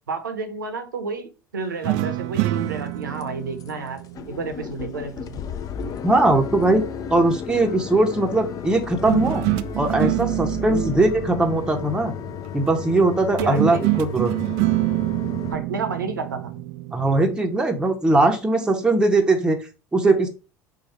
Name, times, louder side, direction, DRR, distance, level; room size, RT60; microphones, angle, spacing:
voice 1, 0.1-4.0 4.3-5.4 10.7-11.0 13.4-13.8 15.5-16.5, right 4 dB, 80° right, 7 dB, 0.8 m, -30 dB
sound 1, 1.8-5.2 9.1-12.5 13.4-17.2, right 20 dB, 55° right, 0.3 m, -26 dB
sound 2, 1.9-2.0 2.5-2.9 3.2-3.3 3.6-3.7 4.0-15.5, left 7 dB, 35° left, 0.5 m, -34 dB
voice 2, 6.0-6.8 7.1-9.4 9.8-12.1 12.5-14.3 16.9-19.6 19.9-20.3, right 2 dB, 10° right, 3 dB, 0.8 m, -20 dB
4.6 x 2.3 x 4.4 m, 0.31 s
figure-of-eight pair, 70°, 10 cm